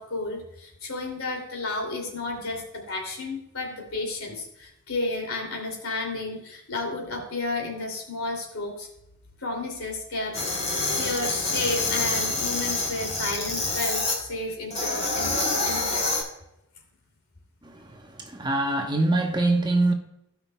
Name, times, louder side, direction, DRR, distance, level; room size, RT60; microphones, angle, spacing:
voice 1, 0.0-8.9 9.4-10.3 10.6-16.0, left 2 dB, 70° left, 2.7 m, -32 dB
sound 1, 10.3-14.2 14.7-16.2, left 2 dB, 30° left, 2.9 m, -27 dB
voice 2, 17.6-19.9, right 2 dB, 20° right, 0.9 m, -24 dB
17.0 x 5.9 x 2.3 m
head